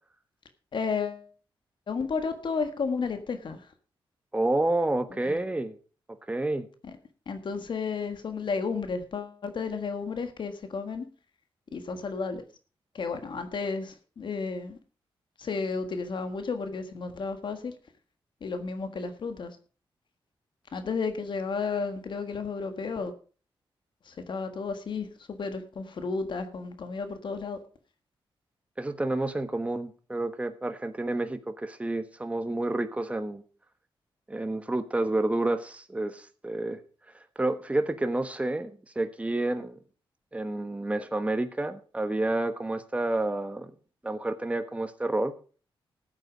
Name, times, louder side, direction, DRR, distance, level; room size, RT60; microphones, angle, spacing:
voice 1, 0.7-1.3 1.9-3.7 5.1-5.4 6.8-7.0 7.3-11.0 11.7-12.4 12.9-14.8 15.4-17.7 18.4-19.6 20.7-23.1 24.0-27.6, left 4 dB, 60° left, 1.6 m, -32 dB
voice 2, 4.3-5.7 6.3-6.7 28.8-33.4 34.3-36.8 37.4-38.7 38.9-39.8 40.3-43.7 44.0-45.3, right 2 dB, 15° right, 1.2 m, -29 dB
14.5 x 8.3 x 5.1 m
cardioid pair, 100°, 9 cm